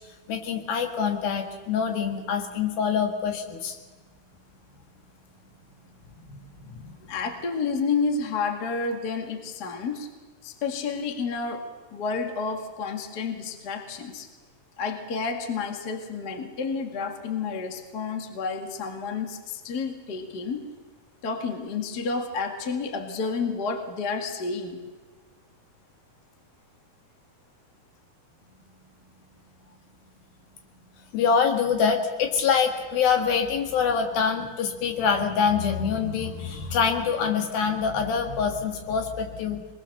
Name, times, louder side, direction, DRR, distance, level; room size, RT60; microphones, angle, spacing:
voice 1, 0.3-3.8 6.3-6.4 6.6-7.0 31.1-39.6, left 6 dB, 75° left, 4 dB, 3.6 m, -25 dB
voice 2, 7.1-10.1 10.4-14.3 14.8-20.6 21.2-24.8, left 4 dB, 35° left, 5 dB, 1.8 m, -30 dB
23.5 x 20.5 x 6.7 m, 1.3 s
omnidirectional pair, 4.3 m